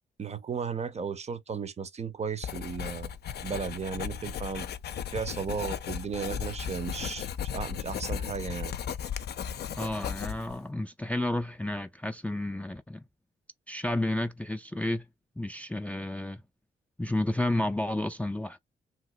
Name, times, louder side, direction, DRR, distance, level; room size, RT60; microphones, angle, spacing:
voice 1, 0.2-3.1 3.4-4.7 5.1-8.8, right 6 dB, 35° right, 0.6 m, -35 dB
Writing, 2.4-10.6, left 8 dB, 65° left, 0.5 m, -36 dB
voice 2, 9.8-13.0 13.7-15.1 15.4-16.4 17.0-18.6, left 1 dB, 5° left, 0.4 m, -31 dB
2.9 x 2.9 x 2.3 m
cardioid pair, 65°, 18 cm